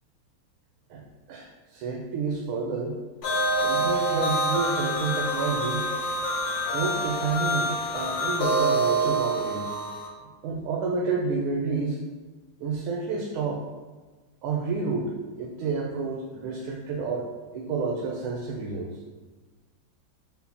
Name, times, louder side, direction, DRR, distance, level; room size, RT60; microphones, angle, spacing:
voice 1, 0.9-3.0 3.6-5.8 6.7-9.7 10.2-12.0 12.6-13.6 14.4-17.3 17.5-19.0, right 4 dB, 90° right, 0 dB, 1.5 m, -30 dB
sound 1, 3.2-10.1, right 1 dB, 65° left, 1.0 m, -26 dB
5.5 x 2.2 x 4.1 m, 1.3 s
omnidirectional pair, 2.3 m